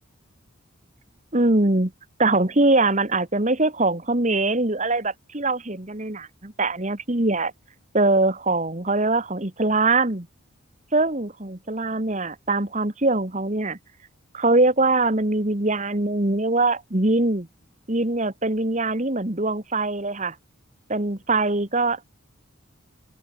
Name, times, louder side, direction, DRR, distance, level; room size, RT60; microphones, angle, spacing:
voice 1, 1.3-1.9 2.2-7.5 7.9-10.3 10.9-13.8 14.3-17.5 17.9-20.3 20.9-22.0, right 2 dB, 35° right, 1.7 m, -22 dB
open air
head